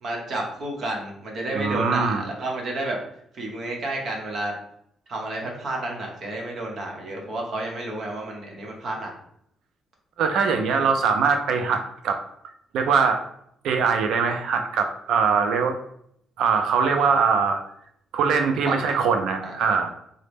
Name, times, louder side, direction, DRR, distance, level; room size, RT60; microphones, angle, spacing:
voice 1, 0.0-3.0 3.3-4.6 5.1-9.1 10.7-10.8 18.6-18.7 19.4-19.5, right 2 dB, 60° right, 0 dB, 0.9 m, -31 dB
voice 2, 1.5-2.2 10.2-12.2 12.7-13.2 13.6-15.8 16.4-17.6 18.1-19.9, right 5 dB, 80° right, 5 dB, 0.4 m, -22 dB
3.7 x 2.0 x 3.4 m, 0.70 s
cardioid pair, 90°, 0 cm